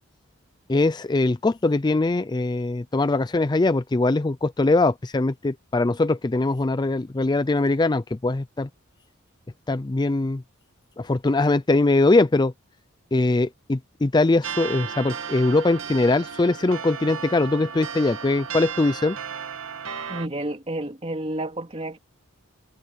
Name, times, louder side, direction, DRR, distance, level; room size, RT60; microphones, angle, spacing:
voice 1, 0.7-8.7 9.7-10.4 11.0-12.5 13.1-19.2, left 2 dB, 20° left, 0.4 m, -22 dB
sound 1, 14.4-20.3, right 7 dB, 75° right, 2.0 m, -34 dB
voice 2, 20.1-22.0, right 1 dB, 30° right, 2.9 m, -30 dB
head